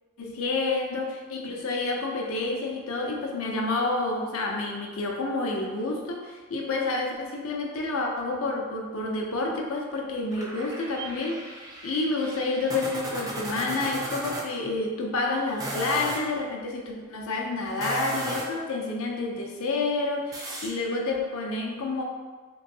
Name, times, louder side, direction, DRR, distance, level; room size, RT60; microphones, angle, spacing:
voice 1, 0.2-22.0, left 3 dB, 65° left, 1 dB, 0.5 m, -29 dB
sound 1, 10.3-14.5 15.5-16.2 17.7-18.6 20.3-20.7, right 1 dB, 15° right, 0.3 m, -35 dB
3.0 x 2.6 x 2.7 m, 1.4 s
head